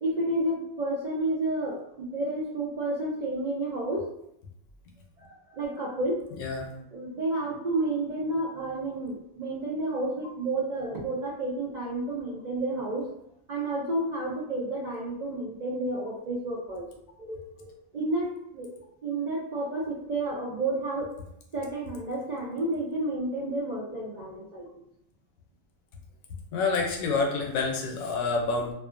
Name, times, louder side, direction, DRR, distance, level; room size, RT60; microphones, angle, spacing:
voice 1, 0.0-4.1 5.2-6.2 6.9-13.1 13.5-16.9 17.2-18.7 19.0-21.1 21.5-24.7, right 2 dB, 70° right, -5 dB, 0.4 m, -31 dB
voice 2, 26.5-28.7, left 4 dB, 80° left, 1 dB, 1.0 m, -27 dB
2.5 x 2.4 x 2.4 m, 0.77 s
omnidirectional pair, 1.5 m